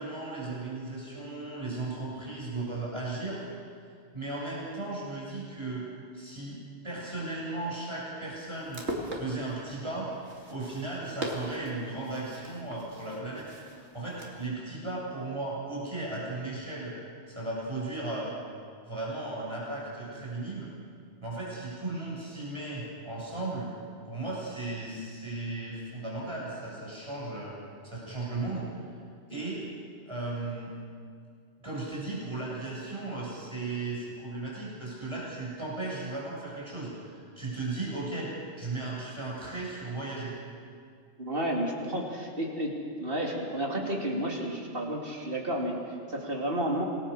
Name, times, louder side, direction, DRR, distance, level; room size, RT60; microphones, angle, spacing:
voice 1, 0.0-3.4 4.1-5.9 6.1-8.8 9.1-10.1 10.5-13.5 13.9-16.9 17.3-18.3 18.9-20.7 21.2-23.7 24.0-27.5 27.8-28.7 29.3-29.6 30.1-30.7 31.6-38.3 38.6-40.4, right 2 dB, 25° right, -5 dB, 7.4 m, -36 dB
sound 1, 8.5-14.5, equal, 85° right, 3.4 m, -40 dB
voice 2, 41.2-46.9, right 1 dB, 55° right, -1 dB, 3.7 m, -32 dB
27.5 x 20.5 x 6.7 m, 2.3 s
omnidirectional pair, 1.1 m